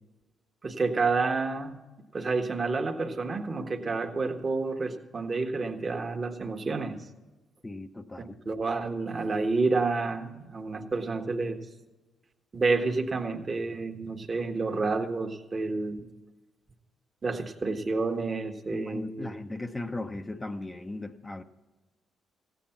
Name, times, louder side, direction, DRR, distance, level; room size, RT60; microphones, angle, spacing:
voice 1, 0.6-1.8 2.1-7.0 8.2-11.6 12.5-16.1 17.2-19.3, right 3 dB, 40° right, 5 dB, 1.4 m, -29 dB
voice 2, 7.6-8.4 18.7-21.4, left 2 dB, 25° left, 6 dB, 0.9 m, -37 dB
15.0 x 9.2 x 5.8 m, 1.1 s
hypercardioid pair, 50°, 0 cm